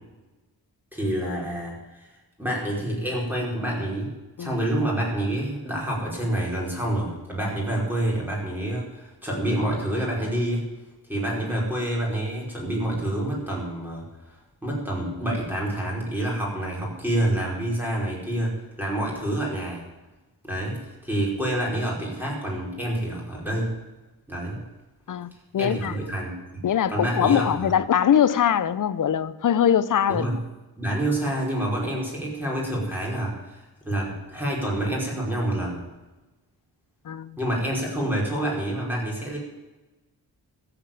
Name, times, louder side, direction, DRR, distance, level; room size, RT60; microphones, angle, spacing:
voice 1, 0.9-2.1 2.4-4.1 4.4-10.7 11.1-19.8 20.4-23.7 24.3-24.6 25.6-26.6 26.9-27.7 30.1-30.4 30.8-35.8 37.4-39.4, right 1 dB, 5° right, -3 dB, 5.2 m, -28 dB
voice 2, 25.1-26.0 26.6-30.2 37.0-37.4, left 9 dB, 50° left, 16 dB, 0.7 m, -22 dB
13.5 x 8.2 x 9.2 m, 1.1 s
wide cardioid pair, 145°, 39 cm